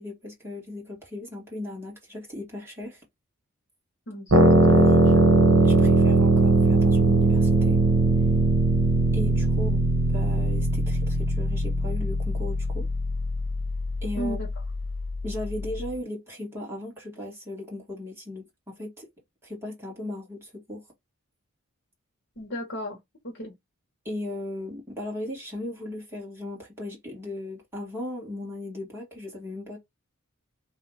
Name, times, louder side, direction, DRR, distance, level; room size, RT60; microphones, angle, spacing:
voice 1, 0.0-3.0 4.7-5.2 5.6-7.8 9.1-9.8 10.1-12.9 14.0-14.4 15.2-19.1 19.4-20.8 24.0-29.8, left 1 dB, 10° right, 2.0 m, -37 dB
voice 2, 4.1-5.2 14.2-14.5 22.4-23.0 23.2-23.5, equal, 55° left, 1.2 m, -35 dB
sound 1, 4.3-15.9, right 2 dB, 65° right, 1.2 m, -21 dB
3.4 x 2.7 x 4.0 m
head